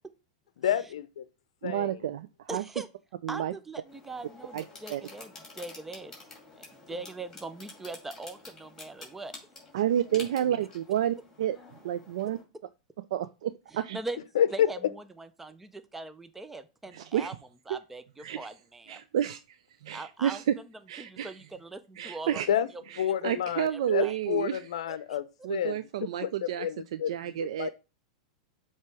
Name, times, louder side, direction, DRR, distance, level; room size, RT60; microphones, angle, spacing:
voice 1, 0.6-1.2 1.6-2.0 14.4-14.7 22.5-22.7 23.0-27.1 27.6-27.7, left 10 dB, 80° left, 0.5 m, -29 dB
voice 2, 1.6-2.6 3.2-3.5 4.5-4.6 4.9-5.0 9.7-11.6 11.8-12.4 13.1-14.0 16.9-17.3 17.7-17.8 18.2-18.5 18.9-20.6 20.9-21.3 22.0-22.5 22.9-24.7 25.4-27.7, right 11 dB, 75° right, 0.4 m, -30 dB
voice 3, 2.5-2.9 3.3-6.2 6.5-9.3 13.7-14.2 14.5-17.3 17.7-19.0 19.9-20.4 21.0-22.4 23.5-24.2 24.9-25.5, right 2 dB, 5° right, 0.4 m, -41 dB
sound 1, 3.8-12.4, left 3 dB, 10° left, 2.5 m, -49 dB
7.4 x 3.0 x 4.7 m
supercardioid pair, 135°, 3 cm